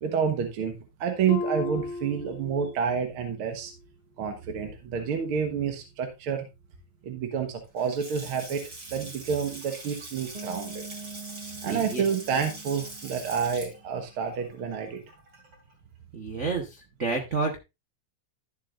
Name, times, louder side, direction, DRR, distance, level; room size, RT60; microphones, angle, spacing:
voice 1, 0.0-3.7 4.2-6.5 7.0-10.8 11.6-15.0, right 7 dB, 55° right, 5 dB, 1.8 m, -29 dB
Harp, 1.3-3.1 3.4-3.8 4.4-4.5, left 3 dB, 80° left, 1.1 m, -35 dB
Water tap faucet / Sink (filling or washing) / Splash splatter, 7.6-15.7, right 2 dB, 40° right, 3.4 m, -43 dB
Bass guitar, 10.3-14.1, right 4 dB, 15° right, 1.8 m, -44 dB
voice 2, 11.7-12.0 16.1-17.6, right 4 dB, 90° right, 3 dB, 0.6 m, -30 dB
13.0 x 7.3 x 2.5 m, 0.24 s
omnidirectional pair, 3.3 m